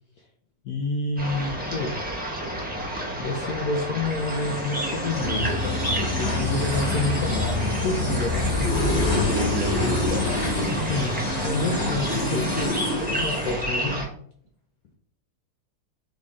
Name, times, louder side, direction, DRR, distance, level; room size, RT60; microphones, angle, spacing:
voice 1, 0.6-2.0 3.2-9.4 10.6-11.2 11.4-14.1, left 3 dB, 65° left, 1 dB, 0.9 m, -29 dB
sound 1, 1.2-14.1, equal, 5° right, 0.7 m, -31 dB
sound 2, 4.2-13.9, left 1 dB, 30° left, 1.5 m, -27 dB
sound 3, 5.2-10.3, left 4 dB, 45° right, 1.0 m, -32 dB
voice 2, 9.1-10.0 10.5-11.1, equal, 65° right, 3 dB, 1.3 m, -31 dB
3.9 x 3.6 x 3.6 m, 0.62 s
omnidirectional pair, 2.2 m